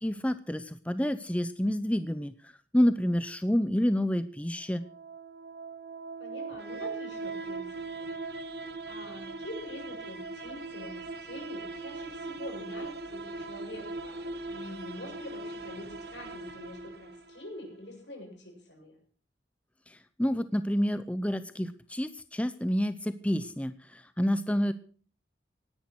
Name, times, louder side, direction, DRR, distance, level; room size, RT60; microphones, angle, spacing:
voice 1, 0.0-2.3 2.7-4.8 19.9-24.7, equal, 5° left, 12 dB, 0.6 m, -28 dB
sound 1, 4.6-17.6, right 3 dB, 60° right, 1.5 m, -40 dB
voice 2, 6.2-8.1 8.9-19.0 24.5-24.6, left 1 dB, 75° left, 2 dB, 7.3 m, -45 dB
18.0 x 10.5 x 6.2 m, 0.42 s
head